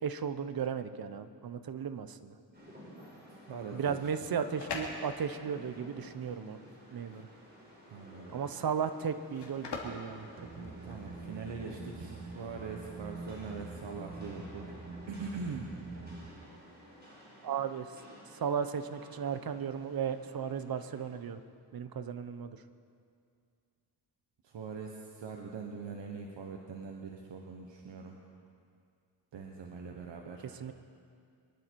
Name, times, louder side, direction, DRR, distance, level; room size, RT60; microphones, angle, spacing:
voice 1, 0.0-2.4 3.7-6.6 6.9-7.2 8.3-10.7 17.4-17.9 18.3-21.4 21.7-22.5 30.6-30.7, right 7 dB, 55° right, 11 dB, 0.9 m, -35 dB
Rain, 2.5-21.2, equal, 25° right, 4.9 m, -54 dB
voice 2, 3.3-4.3 7.9-8.4 10.8-14.7 15.1-15.7 24.4-28.2 29.3-30.5, right 5 dB, 90° right, 1 dB, 1.3 m, -42 dB
sound 1, 4.2-11.1, left 4 dB, 70° left, 2.6 m, -44 dB
sound 2, 10.4-16.3, right 3 dB, 40° right, 1.7 m, -45 dB
23.5 x 11.5 x 4.7 m, 2.3 s
wide cardioid pair, 115°, 42 cm